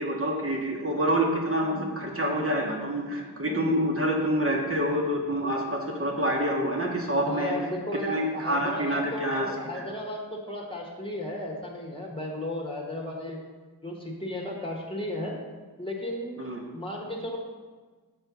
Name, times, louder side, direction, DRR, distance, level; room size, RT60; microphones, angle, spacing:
voice 1, 0.0-7.5 8.1-9.5 9.7-9.8 16.4-16.6, equal, 35° right, -2 dB, 1.4 m, -27 dB
voice 2, 7.3-13.4 13.8-15.4 15.8-16.5 16.7-17.4, left 1 dB, 15° left, -2 dB, 1.4 m, -34 dB
6.3 x 4.4 x 6.1 m, 1.4 s
cardioid pair, 60°, 39 cm